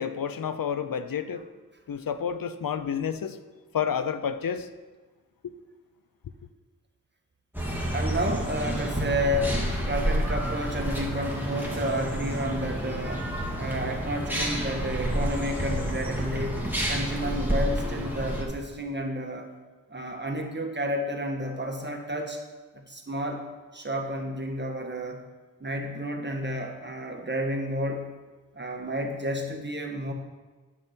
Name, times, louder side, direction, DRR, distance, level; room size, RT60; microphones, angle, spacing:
voice 1, 0.0-1.5 1.9-3.4 3.7-4.7, left 7 dB, 85° left, 11 dB, 0.6 m, -30 dB
sound 1, 7.5-18.4, right 1 dB, 5° right, 2.2 m, -29 dB
voice 2, 7.9-19.5 19.9-22.4 22.7-23.4 23.7-25.2 25.6-28.2 28.5-30.1, equal, 30° right, 2 dB, 1.5 m, -31 dB
9.7 x 7.8 x 4.4 m, 1.3 s
cardioid pair, 40°, 33 cm